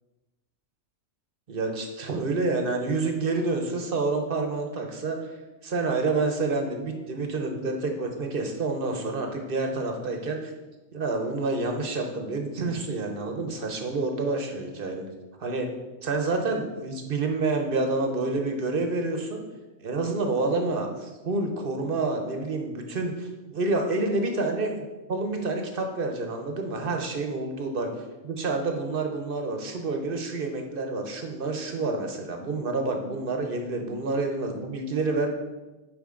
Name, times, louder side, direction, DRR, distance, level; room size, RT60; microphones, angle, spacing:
voice 1, 1.5-5.4 5.6-10.5 10.9-15.1 15.4-15.7 16.0-19.4 19.8-24.7 25.1-35.3, right 3 dB, 50° right, 4 dB, 0.9 m, -28 dB
7.2 x 5.0 x 3.7 m, 1.1 s
omnidirectional pair, 1.4 m